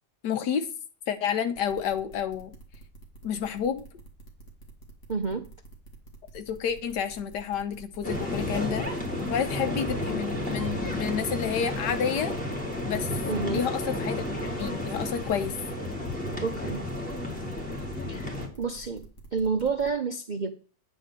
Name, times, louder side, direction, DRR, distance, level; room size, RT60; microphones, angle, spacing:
voice 1, 0.2-0.7 1.1-2.6 3.2-3.8 6.3-8.9 9.3-12.3 12.8-13.2 13.5-14.2 14.6-15.6, left 8 dB, 85° left, 1.5 m, -30 dB
sound 1, 1.6-19.9, right 2 dB, 45° left, 2.0 m, -48 dB
voice 2, 5.1-5.4 13.3-13.6 16.4-16.8 18.1-18.3 18.6-19.0 19.3-20.5, right 5 dB, 65° right, 0.4 m, -29 dB
sound 2, 8.0-18.5, left 1 dB, 5° left, 2.0 m, -32 dB
9.2 x 3.6 x 6.6 m
omnidirectional pair, 1.8 m